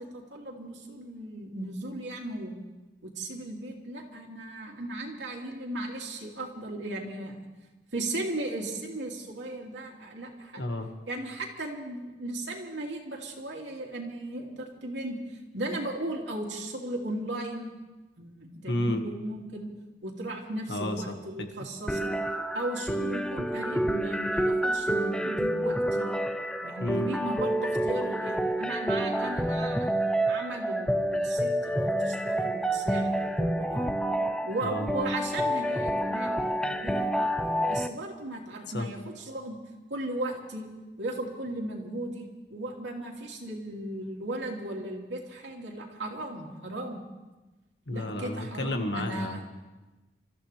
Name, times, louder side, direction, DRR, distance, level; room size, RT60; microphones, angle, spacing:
voice 1, 0.0-2.6 3.0-7.4 7.9-10.7 11.1-17.7 18.2-19.7 20.0-22.2 22.5-26.1 26.6-29.9 30.3-33.9 34.4-37.1 37.7-39.6 39.9-40.6 41.0-47.0 47.9-49.4, right 1 dB, 85° right, 0 dB, 2.7 m, -36 dB
voice 2, 10.6-10.9 18.7-19.0 20.7-21.0 26.8-27.1 34.6-34.9 38.7-38.9 47.9-49.4, left 1 dB, 75° left, 4 dB, 1.7 m, -31 dB
sound 1, 21.9-37.9, right 1 dB, 5° left, 0.5 m, -28 dB
29.0 x 14.0 x 3.4 m, 1.1 s
head